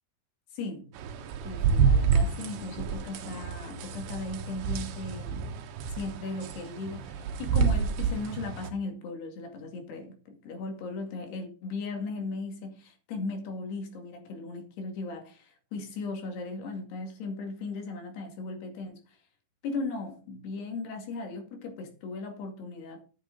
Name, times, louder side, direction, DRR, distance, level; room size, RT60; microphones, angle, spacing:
voice 1, 0.5-0.9 1.4-5.5 6.0-19.0 19.6-23.0, left 3 dB, 75° left, 4.3 m, -37 dB
sound 1, 1.0-8.7, right 6 dB, 75° right, 3.0 m, -29 dB
11.5 x 8.1 x 4.0 m
omnidirectional pair, 4.8 m